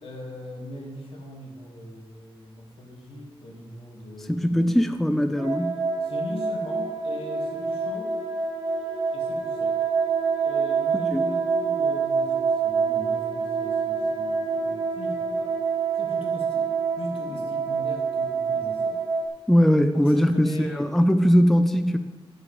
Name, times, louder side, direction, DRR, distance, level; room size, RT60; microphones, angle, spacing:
voice 1, 0.0-4.7 6.0-8.1 9.1-9.8 10.4-15.5 15.9-19.2 19.9-20.8, left 1 dB, 70° left, 0 dB, 2.6 m, -40 dB
voice 2, 4.3-5.8 11.1-11.2 19.5-22.0, equal, ahead, 9 dB, 0.4 m, -20 dB
sound 1, 5.4-19.3, right 5 dB, 80° right, 2.1 m, -26 dB
10.0 x 6.5 x 7.3 m, 1.3 s
wide cardioid pair, 160°, 10 cm